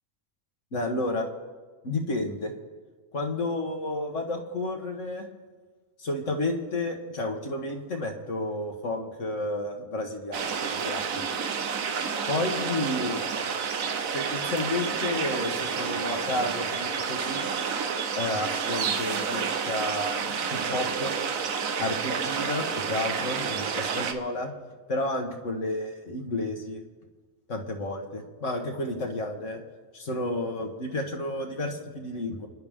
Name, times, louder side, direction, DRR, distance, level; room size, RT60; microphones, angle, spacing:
voice 1, 0.7-1.3 1.8-2.5 3.1-5.2 6.0-11.2 12.3-13.2 14.1-17.5 18.1-21.2 21.8-24.5 24.9-26.8 27.5-29.6 29.9-32.5, left 2 dB, 55° left, 2 dB, 1.8 m, -31 dB
sound 1, 10.3-24.1, right 6 dB, 70° right, 1.3 m, -30 dB
29.5 x 10.5 x 3.7 m, 1.4 s
omnidirectional pair, 1.5 m